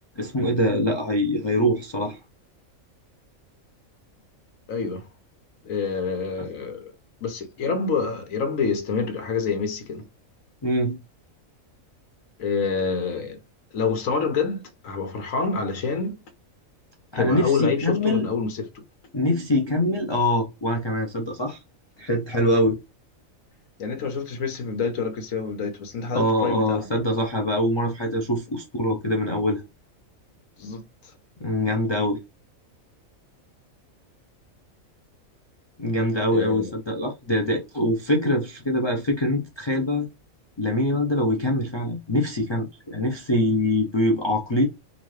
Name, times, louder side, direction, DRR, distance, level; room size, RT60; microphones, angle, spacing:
voice 1, 0.2-2.2 10.6-11.0 17.1-18.3 19.1-21.6 22.0-22.8 26.1-29.6 31.4-32.2 35.8-40.1 40.6-44.7, left 1 dB, 35° left, 0.4 m, -24 dB
voice 2, 4.7-5.1 5.6-6.9 7.2-10.1 12.4-13.4 13.7-16.2 17.1-18.7 23.8-26.9 30.6-30.8 36.3-36.7, left 5 dB, 75° left, 1.3 m, -27 dB
4.0 x 2.5 x 3.1 m
omnidirectional pair, 1.4 m